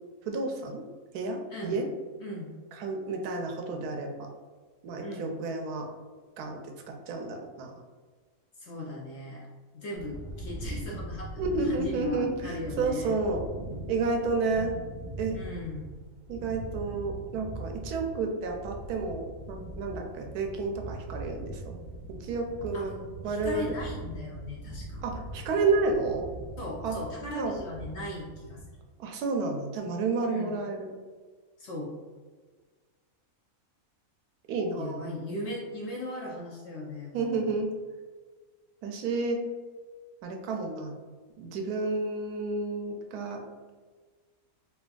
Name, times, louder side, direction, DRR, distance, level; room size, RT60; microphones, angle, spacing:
voice 1, 0.3-0.8 1.1-1.8 2.8-4.3 4.8-5.9 6.4-6.6 6.9-7.7 11.4-13.4 13.9-14.7 15.2-15.4 16.3-21.7 22.2-22.9 23.2-23.7 25.0-26.3 26.8-27.0 27.3-27.6 29.0-30.9 34.5-35.1 37.1-37.7 38.8-39.4 40.2-41.0 41.4-43.4, right 3 dB, 90° right, 2 dB, 1.1 m, -30 dB
voice 2, 1.5-1.8 2.2-2.5 5.0-5.3 8.6-9.5 9.7-13.1 15.3-16.0 22.7-22.8 23.2-25.0 26.6-28.6 30.2-30.5 31.6-31.9 34.8-37.6, left 1 dB, 65° left, -3 dB, 0.7 m, -38 dB
sound 1, 10.0-28.6, right 2 dB, 70° right, 0.4 m, -41 dB
3.3 x 2.7 x 2.2 m, 1.4 s
omnidirectional pair, 1.6 m